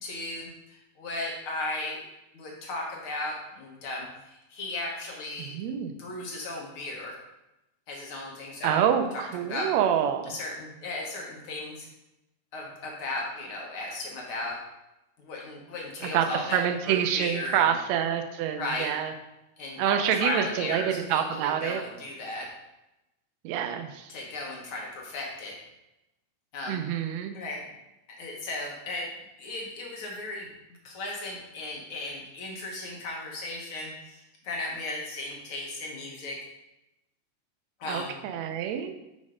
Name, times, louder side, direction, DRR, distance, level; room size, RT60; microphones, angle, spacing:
voice 1, 0.0-2.0 2.3-5.5 6.0-7.1 7.9-8.8 9.1-9.2 9.5-9.7 10.2-11.9 12.5-14.6 15.2-16.6 16.9-17.6 18.6-18.9 19.6-22.5 24.1-25.5 26.5-26.8 27.3-27.6 28.2-29.1 29.4-30.5 30.8-36.4 37.8-38.1, left 2 dB, 70° left, -1 dB, 1.3 m, -35 dB
voice 2, 5.4-5.9 8.6-10.4 16.1-19.1 19.8-21.8 23.4-24.1 26.7-27.4 37.9-38.9, right 9 dB, 85° right, 6 dB, 1.5 m, -27 dB
6.2 x 6.2 x 3.7 m, 0.94 s
omnidirectional pair, 3.9 m